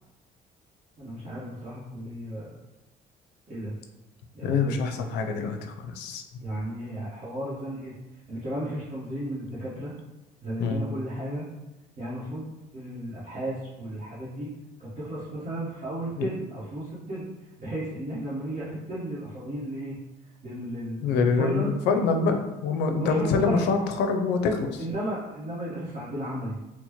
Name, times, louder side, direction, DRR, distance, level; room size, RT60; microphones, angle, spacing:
voice 1, 1.0-2.6 3.5-3.7 4.3-4.7 6.4-7.9 8.3-9.9 10.4-11.5 12.0-14.5 14.8-17.3 17.6-20.0 20.4-21.7 22.9-23.6 24.8-26.6, right 1 dB, 50° right, -10 dB, 1.1 m, -34 dB
voice 2, 4.4-6.2 10.6-10.8 16.2-16.3 21.0-24.8, left 4 dB, 85° left, 5 dB, 0.5 m, -25 dB
4.2 x 2.1 x 3.0 m, 1.0 s
cardioid pair, 110°, 17 cm